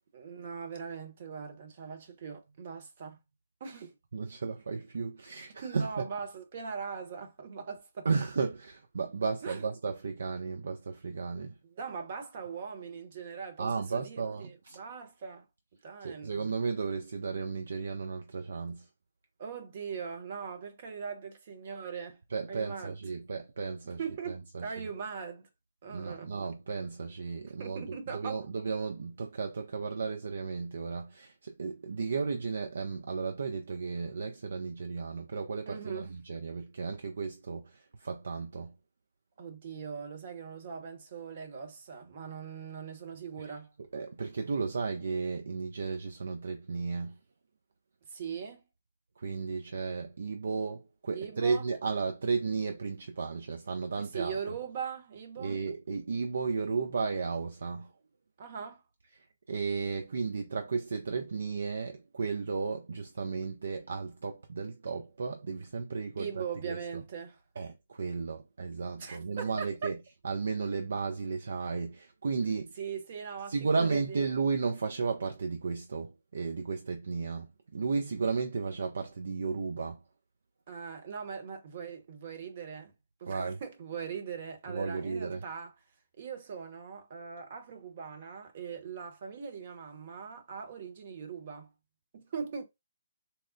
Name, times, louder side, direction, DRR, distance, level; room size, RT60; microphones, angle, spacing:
voice 1, 0.1-3.2 3.6-3.9 5.6-8.1 9.4-9.7 11.6-15.5 15.8-16.3 19.4-22.2 22.5-23.0 23.8-25.5 25.8-26.3 27.4-28.5 35.7-36.1 39.4-43.7 48.1-48.7 51.1-51.7 54.0-55.6 58.4-58.8 66.2-67.4 69.0-69.9 72.8-74.2 80.7-82.9 83.2-85.8 86.2-91.7 92.1-92.6, right 6 dB, 40° right, 0.9 m, -40 dB
voice 2, 4.1-5.9 8.1-11.5 13.6-14.8 16.0-18.8 22.3-24.0 24.3-24.6 25.9-27.8 28.1-37.6 38.0-38.7 43.9-47.1 49.2-54.3 55.4-57.9 59.5-66.3 66.7-66.8 67.6-69.9 70.2-72.7 73.5-77.5 77.7-80.0 83.3-83.6 84.7-85.4, right 4 dB, 55° right, 0.4 m, -34 dB
4.1 x 2.0 x 2.5 m
figure-of-eight pair, 135°, 0 cm